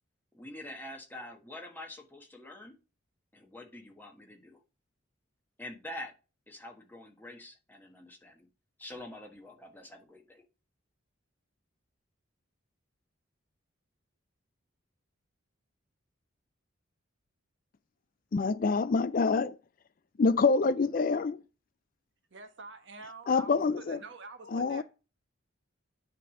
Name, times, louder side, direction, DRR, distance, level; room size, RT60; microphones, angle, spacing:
voice 1, 0.3-2.8 3.3-4.6 5.6-6.1 6.5-8.5 8.8-10.4, left 1 dB, 10° left, 1.3 m, -46 dB
voice 2, 18.3-19.5 20.2-21.4 23.3-24.0 24.5-24.8, left 4 dB, 40° left, 0.4 m, -26 dB
voice 3, 22.3-24.8, right 4 dB, 60° right, 1.1 m, -47 dB
9.4 x 3.3 x 6.3 m
head